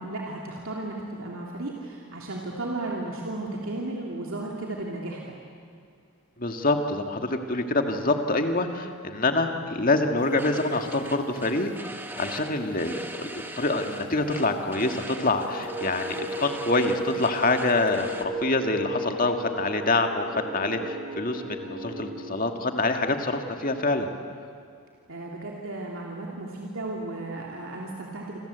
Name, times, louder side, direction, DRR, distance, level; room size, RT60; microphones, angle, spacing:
voice 1, 0.0-5.3 25.1-28.4, right 2 dB, 65° right, -2 dB, 3.0 m, -34 dB
voice 2, 6.4-11.7 12.1-18.1 18.4-24.1, left 2 dB, 40° left, 5 dB, 2.0 m, -26 dB
sound 1, 10.2-18.3, right 1 dB, 10° right, 1.4 m, -41 dB
sound 2, 15.5-22.4, right 2 dB, 40° right, 5.7 m, -35 dB
27.0 x 27.0 x 8.2 m, 2.3 s
head